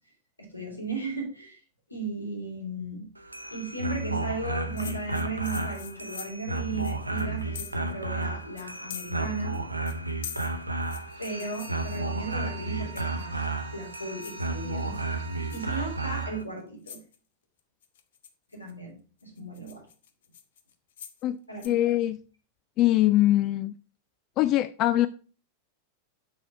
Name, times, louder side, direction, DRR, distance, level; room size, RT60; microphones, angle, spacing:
voice 1, 0.4-1.6 1.9-3.1 3.5-9.6 11.2-15.0 15.5-17.0 18.5-19.8 21.5-21.8, right 3 dB, 85° left, 3.0 m, -36 dB
sound 1, 3.2-16.4, right 2 dB, 85° right, 0.7 m, -32 dB
sound 2, 4.8-7.9 8.2-8.3 8.6-9.6 9.9-12.4 13.0-13.4 13.8-14.4 14.8-15.2 15.5-15.8 16.4-16.5 16.9-17.2 17.8-18.7 19.2-21.2 21.6-21.7, left 8 dB, 60° left, 0.9 m, -44 dB
Bowed string instrument, 11.0-16.3, right 10 dB, 55° right, 0.8 m, -47 dB
voice 2, 21.6-22.2 22.8-23.7 24.4-25.1, left 14 dB, 40° left, 0.3 m, -22 dB
6.8 x 6.3 x 4.6 m
figure-of-eight pair, 90°, 0 cm